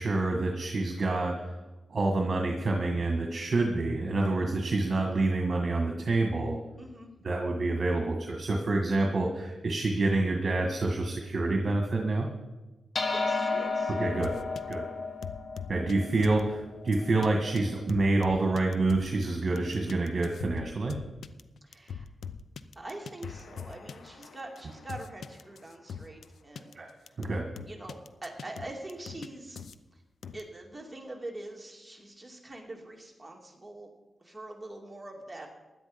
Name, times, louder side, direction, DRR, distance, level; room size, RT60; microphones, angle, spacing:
voice 1, 0.0-1.6 1.9-6.6 7.2-12.3 14.0-14.3 14.7-14.8 15.7-20.9 26.7-26.9 27.2-27.4, right 2 dB, 45° right, 2 dB, 1.7 m, -27 dB
voice 2, 6.8-7.1 13.0-13.9 21.6-22.1 22.7-26.8 27.0-27.1 27.7-29.6 29.9-30.0 30.3-33.9 34.2-35.5, right 2 dB, 15° right, 0 dB, 2.8 m, -44 dB
sound 1, 12.9-17.6, left 3 dB, 45° left, 1.5 m, -33 dB
sound 2, 14.2-14.7 15.2-15.9 16.2-16.4 16.9-17.3 17.6-17.7 17.9-19.2 19.6-26.3 26.6-26.7 27.1-29.3 29.6-29.8 30.2-30.4, left 6 dB, 75° left, 0.6 m, -41 dB
16.5 x 11.0 x 5.3 m, 1.1 s
cardioid pair, 85°, 0 cm